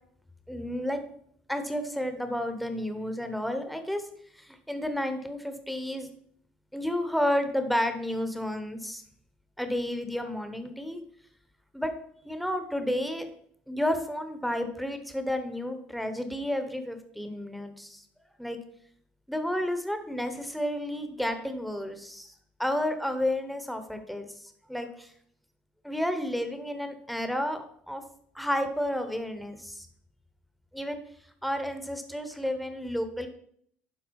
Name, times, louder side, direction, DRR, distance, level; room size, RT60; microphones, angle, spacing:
voice 1, 0.5-1.0 1.5-4.0 4.4-6.1 6.7-9.0 9.6-11.0 11.7-11.9 12.2-13.3 13.7-18.0 18.4-18.6 19.3-22.3 22.6-25.1 25.8-28.0 28.3-29.9 30.7-31.0 31.4-33.3, left 1 dB, ahead, 7 dB, 0.8 m, -31 dB
11.5 x 5.0 x 4.6 m, 0.65 s
cardioid pair, 175°, 3 cm